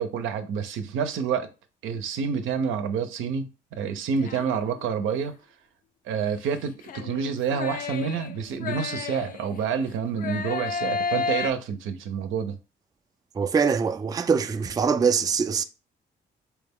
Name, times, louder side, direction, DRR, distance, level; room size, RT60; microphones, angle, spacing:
voice 1, 0.0-1.5 1.8-5.4 6.1-12.6, right 6 dB, 85° right, 0.6 m, -28 dB
sound 1, 4.2-5.0 6.9-9.7 10.2-11.5, left 5 dB, 45° left, 0.4 m, -32 dB
voice 2, 13.4-15.6, right 6 dB, 20° right, 0.3 m, -23 dB
4.5 x 2.2 x 3.5 m
cardioid pair, 90°, 20 cm